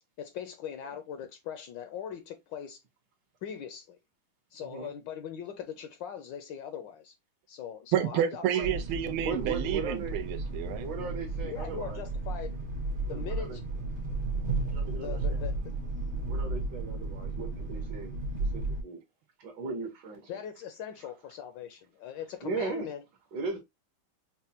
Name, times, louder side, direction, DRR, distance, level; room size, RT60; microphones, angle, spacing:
voice 1, 0.2-2.8 3.4-4.0 4.5-7.1 7.5-8.8 11.4-12.6 13.1-13.6 15.0-15.7 20.3-23.0, left 8 dB, 75° left, 1.1 m, -40 dB
voice 2, 7.9-10.9, right 10 dB, 90° right, 1.5 m, -30 dB
sound 1, 8.6-18.8, right 2 dB, 40° right, 0.7 m, -34 dB
voice 3, 9.2-10.2 10.8-12.0 13.1-13.6 14.7-15.4 16.3-18.2 18.5-19.0 19.4-20.3 22.4-22.9 23.3-23.6, right 3 dB, 65° right, 1.6 m, -37 dB
5.4 x 2.2 x 2.7 m
omnidirectional pair, 2.3 m